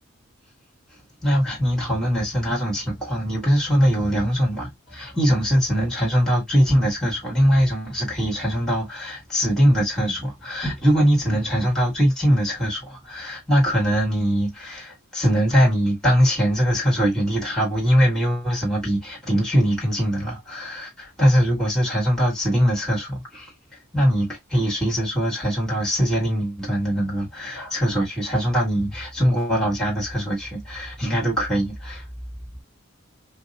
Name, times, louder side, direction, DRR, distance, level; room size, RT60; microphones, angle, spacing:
voice 1, 1.2-23.5 23.9-32.1, equal, ahead, 1.8 m, -22 dB
5.1 x 2.0 x 2.7 m
head